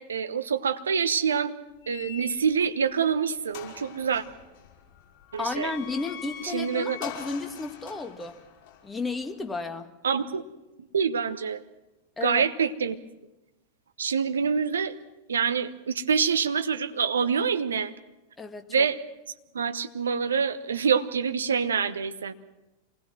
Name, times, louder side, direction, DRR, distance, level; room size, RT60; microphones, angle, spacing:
voice 1, 0.0-1.5 1.9-4.2 5.3-5.7 6.5-7.0 10.0-10.4 10.9-11.6 12.2-13.0 14.0-14.9 15.3-17.9 18.7-19.0 19.5-22.3, right 6 dB, 70° right, 10 dB, 1.0 m, -26 dB
sound 1, 1.8-2.8 3.2-3.3 3.5-9.6, left 9 dB, 45° left, 5.6 m, -43 dB
voice 2, 5.4-8.4 8.8-9.9 12.2-12.4 18.4-18.8, left 3 dB, 10° left, 6 dB, 1.6 m, -33 dB
26.5 x 20.0 x 6.1 m, 1.0 s
figure-of-eight pair, 90°, 0 cm